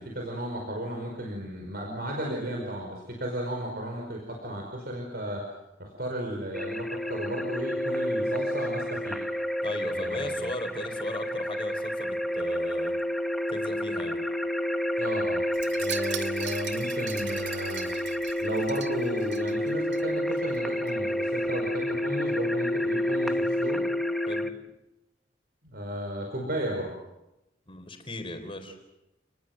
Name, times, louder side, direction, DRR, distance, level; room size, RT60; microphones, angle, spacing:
voice 1, 0.0-5.4 5.8-9.2 9.9-10.5 15.0-15.4 15.8-17.9 18.4-23.8 25.6-26.9, right 1 dB, 60° right, 1 dB, 5.2 m, -34 dB
sound 1, 6.5-24.5, left 1 dB, ahead, 1.1 m, -29 dB
voice 2, 9.6-12.9 13.5-14.2 24.3-24.5 27.7-28.8, left 1 dB, 30° left, 6 dB, 4.2 m, -37 dB
Wind chime, 15.5-20.0 20.3-20.6 20.9-21.0, right 9 dB, 80° right, 2.2 m, -40 dB
29.5 x 20.5 x 7.9 m, 0.94 s
head